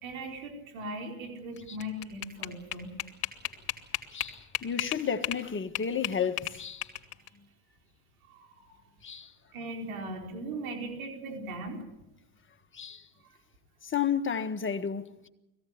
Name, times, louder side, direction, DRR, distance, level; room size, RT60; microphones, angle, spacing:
voice 1, 0.0-3.0 8.2-8.8 9.5-11.8, right 1 dB, 80° right, 4.5 m, -39 dB
sound 1, 1.6-5.4 5.7-7.3, left 13 dB, 55° left, 2.7 m, -34 dB
voice 2, 4.1-6.9 9.0-9.3 12.7-13.0 13.8-15.3, left 7 dB, 25° left, 1.7 m, -32 dB
21.0 x 15.5 x 9.7 m
supercardioid pair, 90°, 43 cm